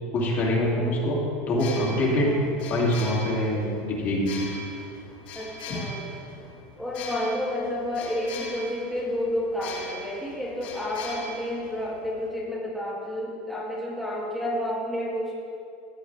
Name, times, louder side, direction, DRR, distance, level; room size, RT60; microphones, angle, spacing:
voice 1, 0.1-1.2 1.5-2.3 2.7-4.3, left 1 dB, 35° left, -4 dB, 2.6 m, -24 dB
voice 2, 0.7-1.1 2.2-2.4 5.4-6.0 6.8-15.3, left 1 dB, ahead, -7 dB, 1.9 m, -30 dB
sound 1, 1.5-12.3, left 2 dB, 70° left, 1.8 m, -41 dB
15.0 x 8.4 x 3.4 m, 2.6 s
supercardioid pair, 140°, 5 cm